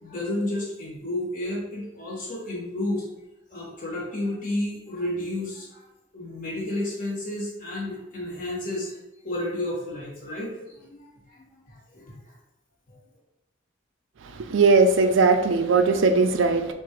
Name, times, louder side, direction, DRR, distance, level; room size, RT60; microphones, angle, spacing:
voice 1, 0.0-3.0 3.5-5.8 6.1-9.0 9.2-11.0 11.3-12.1 12.9-13.0, left 1 dB, 45° left, -5 dB, 1.4 m, -31 dB
voice 2, 14.3-16.7, right 4 dB, 85° right, 7 dB, 0.4 m, -19 dB
3.8 x 2.5 x 4.4 m, 0.94 s
head